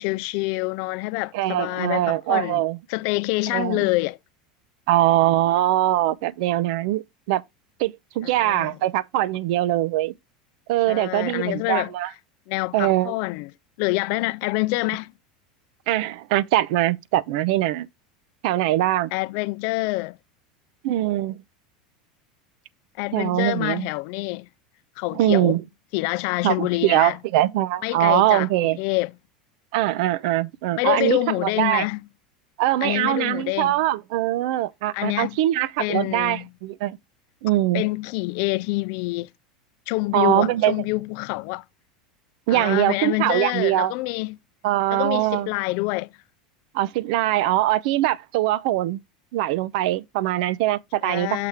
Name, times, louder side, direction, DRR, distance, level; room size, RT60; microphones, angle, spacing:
voice 1, 0.0-2.6 2.9-4.2 8.2-8.8 10.9-11.9 12.5-13.5 13.8-15.1 19.1-20.2 23.0-24.5 25.0-25.5 25.9-27.2 27.8-29.1 30.8-32.0 32.8-33.7 34.9-35.3 35.8-36.5 37.7-39.3 39.9-41.6 42.5-44.4 44.9-46.1 51.0-51.5, left 22 dB, 60° left, 0.4 m, -26 dB
voice 2, 1.3-2.8 3.5-3.8 4.9-7.4 7.8-10.2 10.7-12.1 12.7-13.1 15.9-17.9 18.4-19.1 20.8-21.4 23.1-23.9 25.1-25.6 26.4-28.8 29.7-31.9 32.6-37.0 37.4-37.8 40.1-40.8 42.5-43.9 44.6-45.5 46.7-49.0 49.3-51.4, right 14 dB, 70° right, 0.5 m, -22 dB
6.7 x 3.5 x 5.7 m
supercardioid pair, 110°, 4 cm